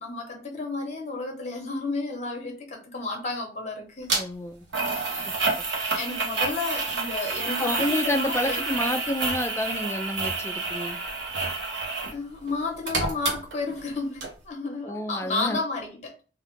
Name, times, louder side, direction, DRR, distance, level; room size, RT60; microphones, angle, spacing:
voice 1, 0.0-4.1 4.9-5.3 5.9-8.6 12.1-16.1, left 3 dB, 40° left, 0.9 m, -32 dB
sound 1, 4.1-4.2 4.7-12.2 12.5-13.9 14.2-14.3, right 3 dB, 85° right, 0.9 m, -29 dB
voice 2, 4.2-4.7 5.3-5.4 7.6-11.0 14.8-15.6, left 1 dB, 15° left, 0.3 m, -29 dB
2.5 x 2.4 x 3.6 m
head